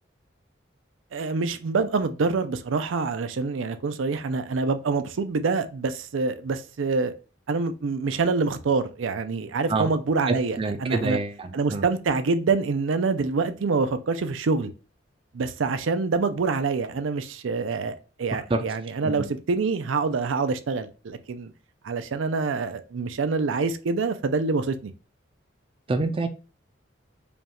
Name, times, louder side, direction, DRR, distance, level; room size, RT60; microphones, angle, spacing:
voice 1, 1.1-7.1 7.5-11.2 11.5-14.7 15.3-21.5 21.8-24.9, right 4 dB, 85° right, 0.5 m, -26 dB
voice 2, 10.3-11.8 18.5-18.6 19.0-19.3 25.9-26.3, right 3 dB, 30° right, 0.4 m, -27 dB
5.2 x 2.3 x 2.9 m
head